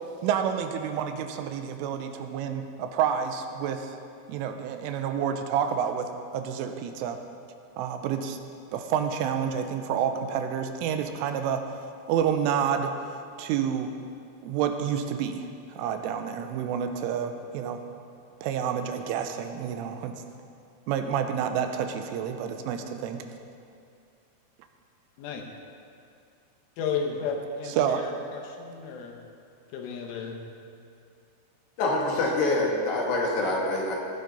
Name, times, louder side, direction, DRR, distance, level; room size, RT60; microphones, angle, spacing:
voice 1, 0.2-3.9 4.3-7.2 7.8-8.4 8.7-11.6 12.1-12.9 13.4-13.9 14.4-17.8 18.4-20.2 20.9-23.3 27.8-28.1, right 8 dB, 85° right, 6 dB, 3.3 m, -29 dB
voice 2, 26.8-29.2 29.7-30.4, left 5 dB, 80° left, 2 dB, 3.8 m, -33 dB
voice 3, 31.8-34.0, left 2 dB, 65° left, -2 dB, 3.5 m, -25 dB
19.0 x 11.5 x 4.1 m, 2.5 s
omnidirectional pair, 5.7 m